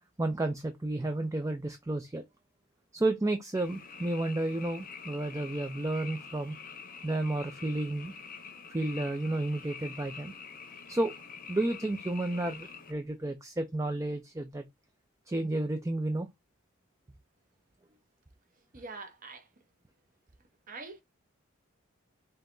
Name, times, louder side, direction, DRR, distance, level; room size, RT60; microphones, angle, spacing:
voice 1, 0.2-2.2 2.9-6.6 7.0-8.1 8.7-10.3 10.9-11.1 11.5-14.6 15.3-16.3, right 2 dB, 15° right, 0.4 m, -31 dB
Frog, 3.5-12.9, left 5 dB, 40° left, 0.8 m, -46 dB
voice 2, 18.7-19.5 20.7-21.0, right 3 dB, 40° right, 0.9 m, -44 dB
5.5 x 2.9 x 2.6 m
head